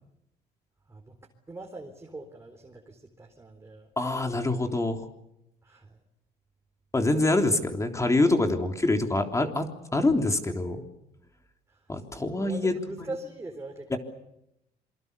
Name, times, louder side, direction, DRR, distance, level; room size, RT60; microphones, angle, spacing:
voice 1, 1.5-3.9 5.6-6.0 11.7-11.8 12.1-14.0, right 2 dB, 15° right, 3 dB, 4.1 m, -42 dB
voice 2, 4.0-5.1 6.9-10.8 11.9-12.7 13.9-14.0, left 2 dB, 15° left, 5 dB, 3.5 m, -25 dB
27.5 x 24.5 x 6.9 m, 0.83 s
cardioid pair, 110°, 17 cm